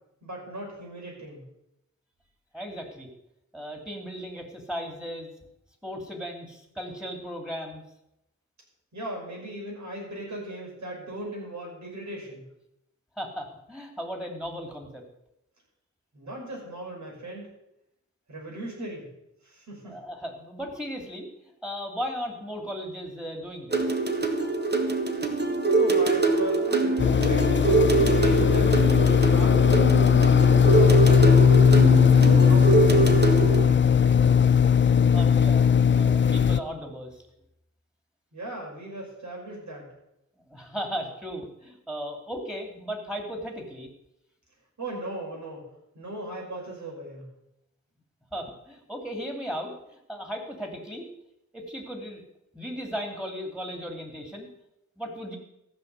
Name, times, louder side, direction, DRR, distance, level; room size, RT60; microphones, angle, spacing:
voice 1, 0.2-1.4 8.9-12.4 16.1-17.5 18.3-19.1 19.4-19.9 25.6-29.7 30.2-31.7 32.1-33.3 33.6-34.2 38.3-39.9 44.8-45.7 45.9-47.2, right 1 dB, 75° right, -2 dB, 5.5 m, -37 dB
voice 2, 2.5-3.1 3.5-5.3 5.8-7.8 13.2-15.1 19.8-21.3 21.6-23.9 35.1-37.2 40.5-43.9 48.3-51.0 51.5-52.2 52.5-54.5 55.0-55.4, equal, 5° right, 3 dB, 2.7 m, -36 dB
sound 1, 23.7-33.6, right 3 dB, 35° right, 1.6 m, -24 dB
sound 2, 27.0-36.6, left 7 dB, 40° left, 0.5 m, -18 dB
14.5 x 6.3 x 8.1 m, 0.85 s
wide cardioid pair, 100°, 29 cm